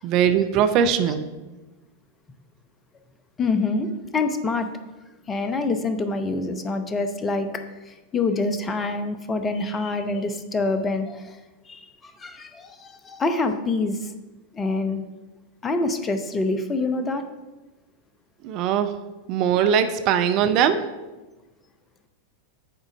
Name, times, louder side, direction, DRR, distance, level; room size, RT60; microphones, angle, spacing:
voice 1, 0.0-1.3 18.4-18.9 19.3-20.8, right 8 dB, 40° right, 9 dB, 0.5 m, -20 dB
voice 2, 3.4-4.7 5.3-11.4 11.7-14.1 14.5-15.0 15.6-17.2, left 3 dB, 20° left, 8 dB, 0.7 m, -26 dB
9.1 x 3.8 x 6.2 m, 1.1 s
figure-of-eight pair, 90°, 0 cm